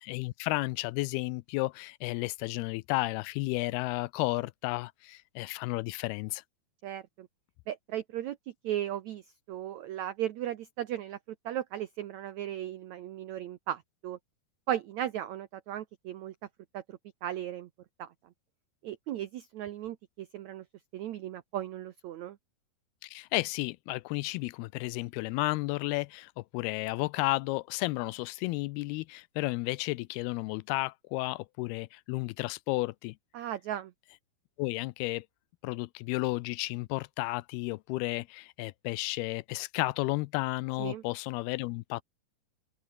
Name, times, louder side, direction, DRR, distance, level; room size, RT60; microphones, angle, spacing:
voice 1, 0.0-6.4 23.0-33.2 34.6-35.3 35.6-42.0, left 22 dB, 85° left, 2.4 m, -32 dB
voice 2, 6.8-7.3 7.7-8.4 8.6-11.2 11.4-14.2 14.7-16.3 16.7-17.7 18.0-18.1 18.8-20.6 20.9-22.4 33.3-33.9 40.8-41.0, right 12 dB, 90° right, 1.6 m, -36 dB
open air
omnidirectional pair, 4.6 m